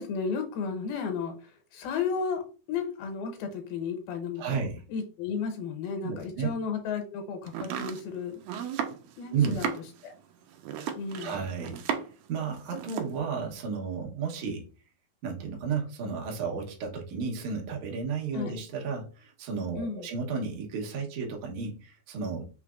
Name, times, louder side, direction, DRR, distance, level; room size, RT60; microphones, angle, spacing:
voice 1, 0.0-2.4 2.7-8.3 9.2-9.7 11.0-11.4 18.3-18.6 19.8-20.1, left 5 dB, 85° left, 5 dB, 2.5 m, -33 dB
voice 2, 4.4-4.8 6.0-6.5 9.3-9.6 11.2-11.8 12.3-14.7 15.2-22.5, right 5 dB, 65° right, 0 dB, 2.1 m, -32 dB
Domestic sounds home sounds, 7.5-12.3 12.5-13.2, right 8 dB, 85° right, 2.4 m, -35 dB
5.8 x 3.2 x 2.4 m, 0.35 s
omnidirectional pair, 4.3 m